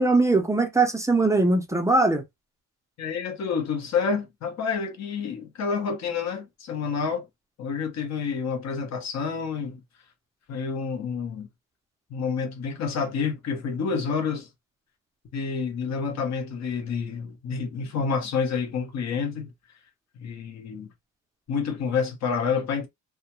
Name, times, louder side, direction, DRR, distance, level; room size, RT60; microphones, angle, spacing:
voice 1, 0.0-2.2, right 2 dB, 10° right, 0.4 m, -21 dB
voice 2, 3.0-7.3 7.6-9.8 10.5-11.5 12.1-14.5 15.3-19.5 20.2-20.9 21.5-22.9, left 5 dB, 50° left, 0.8 m, -28 dB
2.3 x 2.2 x 2.8 m
cardioid pair, 130°, 33 cm